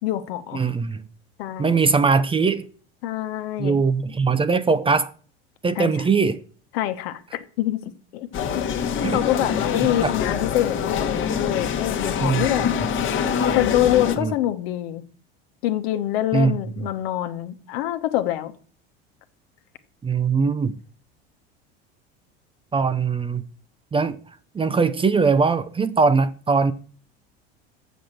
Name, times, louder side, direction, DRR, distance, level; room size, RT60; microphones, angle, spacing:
voice 1, 0.0-0.6 1.4-1.8 3.0-3.8 5.8-5.9 6.7-7.8 8.1-8.3 8.5-8.6 9.1-12.8 13.5-15.0 15.6-18.5, left 13 dB, 70° left, 1.1 m, -25 dB
voice 2, 0.5-1.0 1.6-2.6 3.6-5.1 5.6-6.4 9.0-9.2 10.0-10.1 12.2-12.5 14.2-14.3 16.3-16.9 20.0-20.8 22.7-23.4 23.9-24.2 24.5-26.7, right 4 dB, 15° right, 0.6 m, -21 dB
sound 1, 8.3-14.2, left 7 dB, 40° left, 1.3 m, -25 dB
7.3 x 6.4 x 7.5 m
hypercardioid pair, 90°, 31 cm